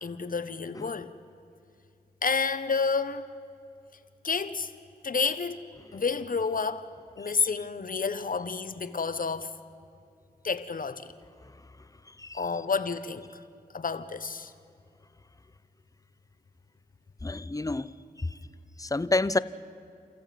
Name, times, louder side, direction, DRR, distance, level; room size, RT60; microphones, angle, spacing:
voice 1, 0.0-1.1 2.2-3.3 4.2-4.7 5.0-5.6 5.9-6.9 7.2-9.5 10.4-11.1 12.3-13.3 13.7-14.5, left 5 dB, 60° left, 1.2 m, -29 dB
voice 2, 17.2-18.3 18.8-19.4, left 2 dB, 20° left, 0.7 m, -29 dB
29.0 x 14.0 x 9.3 m
cardioid pair, 50°, 16 cm